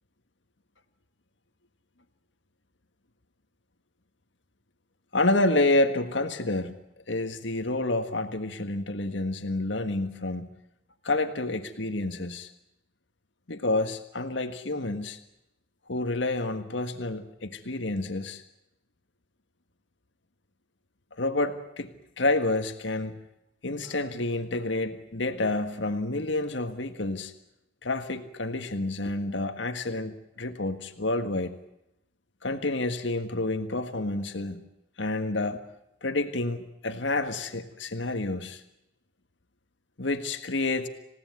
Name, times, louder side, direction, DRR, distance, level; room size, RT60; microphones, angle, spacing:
voice 1, 5.1-6.8 7.1-10.6 11.0-12.5 13.5-15.2 15.9-18.4 21.2-23.2 23.6-27.3 27.8-31.6 32.4-34.6 35.0-35.6 36.0-38.6 40.0-40.9, left 2 dB, 70° left, 8 dB, 1.6 m, -29 dB
27.5 x 17.0 x 9.5 m, 0.85 s
head